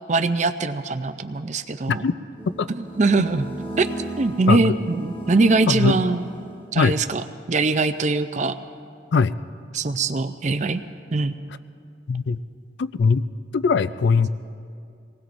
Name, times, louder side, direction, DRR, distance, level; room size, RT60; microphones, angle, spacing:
voice 1, 0.1-2.0 3.0-3.5 3.8-3.9 4.2-6.3 6.7-7.2 7.5-8.6 9.7-10.8 11.1-11.4, right 3 dB, 40° right, 10 dB, 0.5 m, -22 dB
sound 1, 2.3-7.0, right 2 dB, 25° left, 1.4 m, -36 dB
voice 2, 12.1-12.4 12.8-13.2 13.5-14.3, left 5 dB, 65° left, 14 dB, 0.4 m, -20 dB
25.0 x 19.0 x 2.6 m, 2.4 s
head